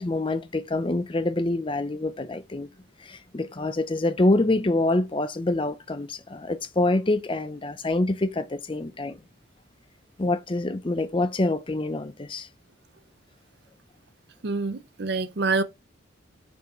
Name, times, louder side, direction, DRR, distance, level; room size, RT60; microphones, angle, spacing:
voice 1, 0.0-2.7 3.0-9.2 10.2-12.5, left 2 dB, 25° left, 0.5 m, -26 dB
voice 2, 14.4-15.6, right 3 dB, 55° right, 0.6 m, -26 dB
5.4 x 4.7 x 3.9 m
head